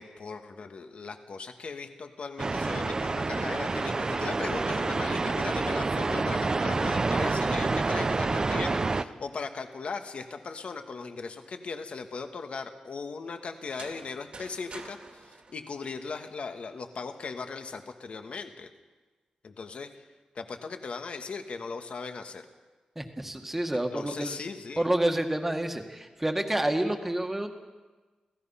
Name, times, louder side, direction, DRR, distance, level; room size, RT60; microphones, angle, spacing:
voice 1, 0.0-18.7 19.4-19.9 20.3-22.4 23.9-24.9, left 4 dB, 55° left, 7 dB, 1.5 m, -38 dB
sound 1, 2.4-9.0, right 3 dB, 30° right, 0.7 m, -28 dB
sound 2, 13.6-16.5, right 3 dB, 50° right, 2.3 m, -48 dB
voice 2, 22.9-24.4 24.8-27.5, right 1 dB, 10° right, 5 dB, 1.7 m, -28 dB
28.5 x 16.5 x 5.7 m, 1.3 s
wide cardioid pair, 145°, 2 cm